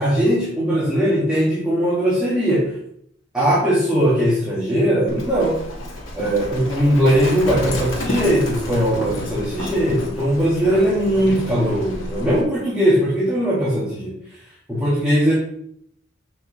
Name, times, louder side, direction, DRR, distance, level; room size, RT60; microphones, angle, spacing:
voice 1, 0.0-2.7 3.3-5.6 6.1-14.1 14.7-15.3, equal, 5° right, -9 dB, 2.5 m, -19 dB
Livestock farm animals working animals, 5.1-12.4, left 1 dB, 85° left, 2.8 m, -30 dB
7.1 x 6.2 x 6.4 m, 0.69 s
head